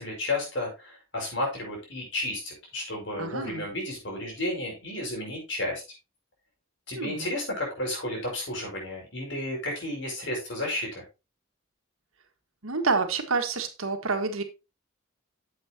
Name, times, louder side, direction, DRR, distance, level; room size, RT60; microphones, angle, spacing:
voice 1, 0.0-5.8 6.9-11.0, left 1 dB, 60° left, 5.4 m, -32 dB
voice 2, 3.2-3.6 6.9-7.3 12.6-14.4, right 4 dB, 85° right, 1.7 m, -28 dB
9.8 x 7.9 x 2.9 m
head